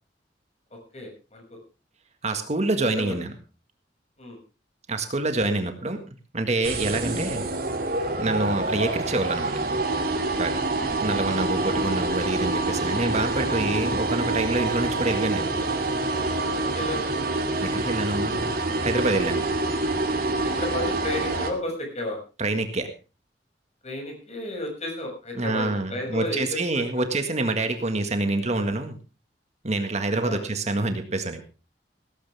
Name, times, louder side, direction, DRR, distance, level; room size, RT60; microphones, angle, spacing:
voice 1, 0.7-1.6 3.0-3.2 4.2-4.4 10.7-11.1 16.7-17.0 20.4-22.2 23.8-27.0 30.2-30.4, left 1 dB, 40° left, 2 dB, 6.4 m, -33 dB
voice 2, 2.2-3.3 4.9-6.0 6.3-7.5 8.2-9.6 10.3-10.6 11.0-15.5 17.6-18.5 18.8-19.4 22.4-22.9 25.4-29.0 29.6-31.4, right 2 dB, 40° right, 7 dB, 1.7 m, -26 dB
sound 1, 6.6-21.5, right 2 dB, 55° right, 2.6 m, -26 dB
17.0 x 14.5 x 3.5 m, 0.33 s
head